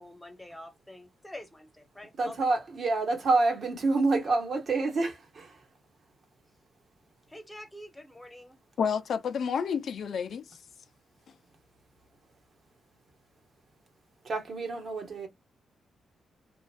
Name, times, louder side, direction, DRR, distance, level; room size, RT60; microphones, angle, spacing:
voice 1, 0.0-2.5 7.3-8.6, left 1 dB, 10° left, 1.3 m, -46 dB
voice 2, 2.2-5.6 14.2-15.3, right 3 dB, 60° right, 1.3 m, -27 dB
voice 3, 8.8-10.6, left 6 dB, 70° left, 0.5 m, -30 dB
2.9 x 2.5 x 2.4 m
supercardioid pair, 55°, 0 cm